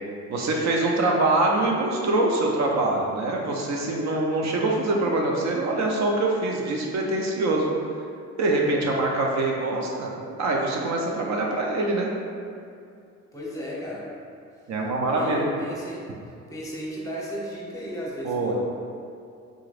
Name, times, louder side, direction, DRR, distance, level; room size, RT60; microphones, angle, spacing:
voice 1, 0.3-7.7 8.4-10.1 10.4-12.1 14.7-15.4 18.2-18.5, right 2 dB, 65° right, -1 dB, 0.7 m, -24 dB
voice 2, 13.3-14.1 15.1-16.0 16.5-18.5, equal, 10° left, -5 dB, 0.8 m, -34 dB
3.8 x 3.0 x 2.5 m, 2.4 s
cardioid pair, 90°, 30 cm